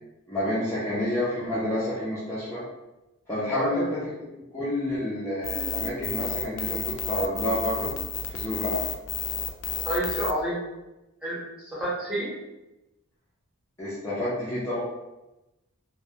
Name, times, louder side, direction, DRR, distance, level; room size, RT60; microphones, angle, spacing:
voice 1, 0.3-2.6 3.3-4.0 4.5-7.9 8.3-8.9 13.8-14.8, left 1 dB, 15° left, -11 dB, 0.5 m, -29 dB
voice 2, 3.5-3.9 9.8-10.6 11.2-12.3, right 1 dB, 5° right, -9 dB, 0.9 m, -29 dB
sound 1, 5.4-10.3, left 7 dB, 70° left, 0.3 m, -31 dB
2.2 x 2.1 x 2.7 m, 0.99 s
head